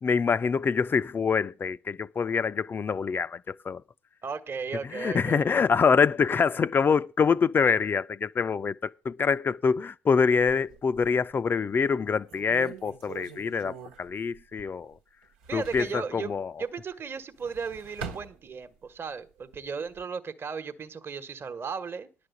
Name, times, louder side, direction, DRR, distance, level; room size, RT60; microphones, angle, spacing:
voice 1, 0.0-3.8 4.9-14.9 15.5-16.5, left 5 dB, 35° left, 0.5 m, -25 dB
voice 2, 4.2-5.5 15.5-16.3 16.6-22.1, right 5 dB, 35° right, 1.2 m, -35 dB
sound 1, 10.3-11.3 11.8-11.9 12.3-14.9 15.2-16.0 17.2-18.9 19.4-20.0, right 6 dB, 80° right, 1.2 m, -44 dB
10.5 x 4.9 x 8.2 m
hypercardioid pair, 60°, 6 cm